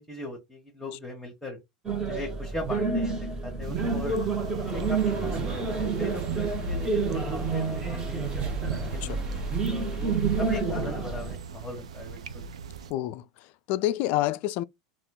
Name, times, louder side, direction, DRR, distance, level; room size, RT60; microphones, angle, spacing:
voice 1, 0.0-1.6 2.0-4.2 4.6-9.2 9.7-12.5, left 1 dB, 5° left, 1.8 m, -39 dB
sound 1, 1.8-11.3, right 4 dB, 20° right, 1.4 m, -29 dB
sound 2, 3.6-12.9, right 6 dB, 85° right, 0.5 m, -40 dB
sound 3, 4.7-10.6, right 1 dB, 35° right, 1.3 m, -36 dB
voice 2, 12.9-14.6, left 15 dB, 55° left, 0.3 m, -28 dB
3.6 x 2.5 x 3.7 m
hypercardioid pair, 95°, 3 cm